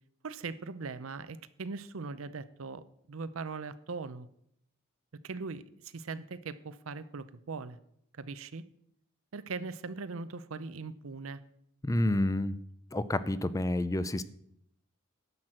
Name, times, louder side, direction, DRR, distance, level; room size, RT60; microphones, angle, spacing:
voice 1, 0.2-4.3 5.2-7.8 8.1-8.6 9.3-11.4, right 4 dB, 80° right, 14 dB, 0.6 m, -40 dB
voice 2, 11.8-12.6 12.9-14.2, left 1 dB, 15° left, 14 dB, 0.5 m, -29 dB
11.0 x 5.9 x 7.6 m, 0.72 s
head